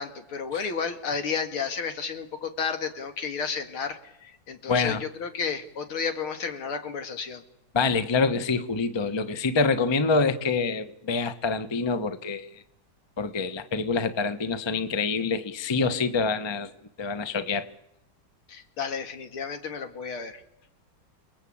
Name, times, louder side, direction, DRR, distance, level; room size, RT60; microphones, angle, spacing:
voice 1, 0.0-7.4 18.5-20.4, left 6 dB, 80° left, 7 dB, 2.8 m, -32 dB
voice 2, 4.7-5.0 7.7-12.6 13.2-16.7 17.0-17.7, left 4 dB, 20° left, 11 dB, 0.6 m, -26 dB
29.0 x 20.0 x 8.6 m, 0.86 s
omnidirectional pair, 2.3 m